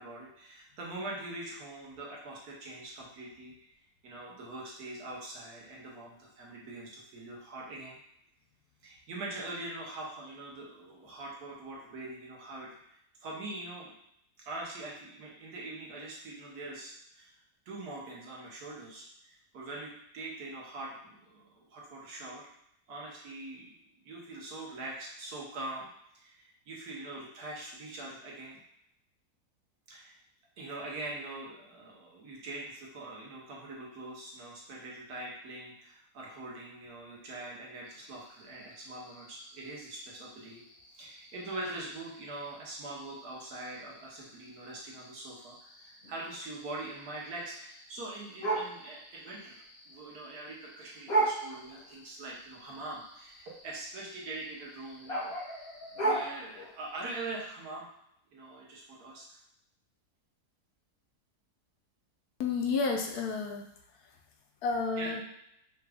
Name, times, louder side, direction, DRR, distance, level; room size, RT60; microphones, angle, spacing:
voice 1, 0.0-3.7 4.0-8.0 8.8-13.9 14.4-17.4 17.7-22.5 22.9-23.7 24.0-25.9 26.1-28.6 29.9-30.2 30.6-40.6 41.0-55.7 56.0-57.8 58.3-59.4 65.0-65.1, right 2 dB, 70° right, -3 dB, 1.4 m, -43 dB
sound 1, 37.8-57.5, right 2 dB, 45° left, 1.0 m, -39 dB
voice 2, 62.4-63.6 64.6-65.2, left 4 dB, 75° left, 2 dB, 1.1 m, -30 dB
4.9 x 2.3 x 3.4 m, 0.76 s
omnidirectional pair, 1.7 m